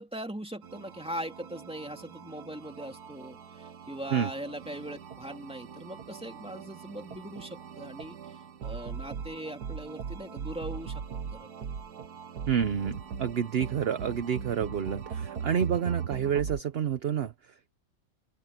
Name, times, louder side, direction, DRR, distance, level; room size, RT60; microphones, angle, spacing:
voice 1, 0.0-11.0 11.3-11.5, right 1 dB, 5° right, 2.4 m, -40 dB
sound 1, 0.6-16.6, right 6 dB, 80° right, 1.8 m, -40 dB
voice 2, 12.5-17.3, right 8 dB, 50° right, 0.8 m, -29 dB
open air
omnidirectional pair, 1.7 m